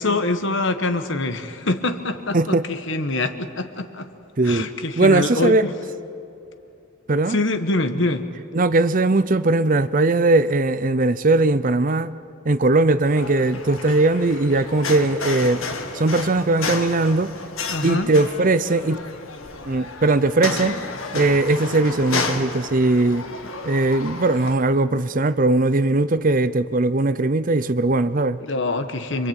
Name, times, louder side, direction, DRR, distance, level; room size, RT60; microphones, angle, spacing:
voice 1, 0.0-4.1 4.4-5.7 7.3-8.3 17.7-18.1 28.4-29.3, left 2 dB, 60° left, 1.5 m, -24 dB
voice 2, 2.3-2.7 4.4-4.7 5.0-5.6 7.1-7.4 8.5-12.1 12.5-15.6 15.9-17.3 17.8-19.0 19.7-20.8 21.1-23.2 23.6-28.4, right 2 dB, 40° right, 0.6 m, -19 dB
sound 1, 13.0-24.5, left 4 dB, 75° left, 2.1 m, -32 dB
26.5 x 24.0 x 9.0 m
head